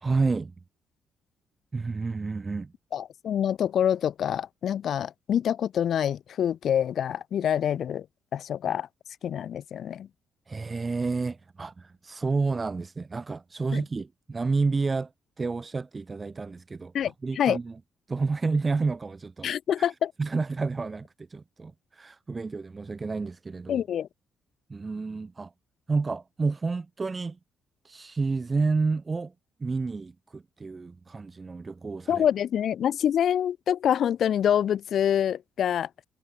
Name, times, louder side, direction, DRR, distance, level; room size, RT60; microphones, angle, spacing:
voice 1, 0.0-0.5 1.7-2.7 10.5-15.1 15.4-16.9 17.2-17.8 18.1-19.5 19.8-19.9 20.2-23.8 24.7-25.5 25.9-27.4 27.8-29.3 29.6-32.2, right 4 dB, 30° right, 1.0 m, -30 dB
voice 2, 2.9-8.0 8.3-8.9 9.2-10.1 13.7-13.8 16.9-17.6 19.4-20.1 23.7-24.1 32.1-35.9, left 9 dB, 65° left, 1.2 m, -26 dB
cardioid pair, 90°, 0 cm